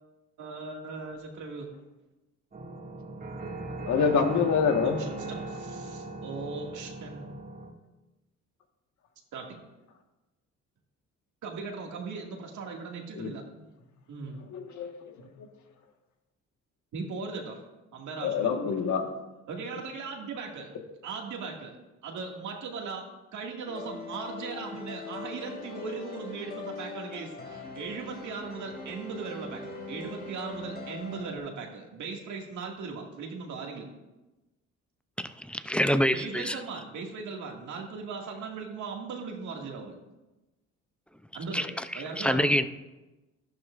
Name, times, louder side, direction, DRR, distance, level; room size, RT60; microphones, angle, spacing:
voice 1, 0.4-1.7 4.8-7.3 9.3-9.6 11.4-13.4 14.1-14.4 16.9-17.6 17.9-18.6 19.0-19.1 19.5-20.8 21.0-21.7 22.0-23.1 23.3-33.9 36.1-40.0 41.3-41.7 41.9-42.5, right 4 dB, 75° right, 1 dB, 2.1 m, -38 dB
sound 1, 2.5-7.7, right 2 dB, 30° right, 2.1 m, -39 dB
voice 2, 3.9-5.0 13.2-13.3 14.5-14.9 18.2-19.0, left 6 dB, 70° left, 4 dB, 1.5 m, -25 dB
sound 2, 23.6-31.4, left 3 dB, 30° left, 2.5 m, -41 dB
voice 3, 35.2-36.6 41.5-41.7 42.2-42.6, equal, 5° left, 11 dB, 0.5 m, -26 dB
13.5 x 11.5 x 2.5 m, 1.1 s
cardioid pair, 90°, 30 cm